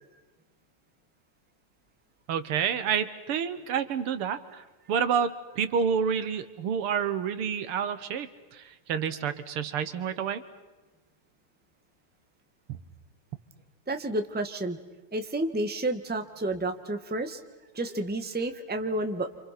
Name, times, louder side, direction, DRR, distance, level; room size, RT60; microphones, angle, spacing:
voice 1, 2.3-10.4, right 7 dB, 80° right, 12 dB, 2.2 m, -29 dB
voice 2, 13.9-14.8 15.1-17.4 17.7-19.3, right 2 dB, 5° right, 7 dB, 1.2 m, -30 dB
29.0 x 27.5 x 5.9 m, 1.2 s
omnidirectional pair, 2.4 m